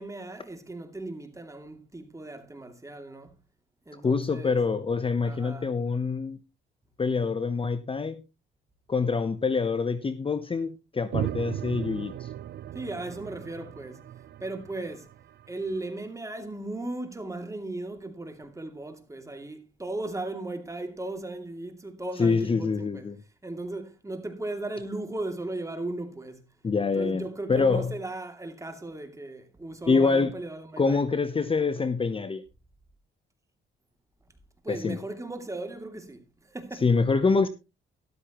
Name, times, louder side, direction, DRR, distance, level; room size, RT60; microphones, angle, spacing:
voice 1, 0.0-3.3 3.9-4.6 5.2-5.7 12.7-14.0 14.4-15.1 15.5-23.1 23.4-26.4 27.0-31.0 34.6-36.9, right 2 dB, 15° right, 2.6 m, -37 dB
voice 2, 4.0-6.4 7.0-8.2 8.9-12.3 22.2-23.2 26.6-27.9 29.9-30.3 30.8-32.4 34.7-35.0 36.8-37.5, left 4 dB, 25° left, 0.9 m, -25 dB
sound 1, 11.1-15.8, right 11 dB, 55° right, 0.5 m, -36 dB
13.0 x 12.0 x 3.0 m
cardioid pair, 90°, 20 cm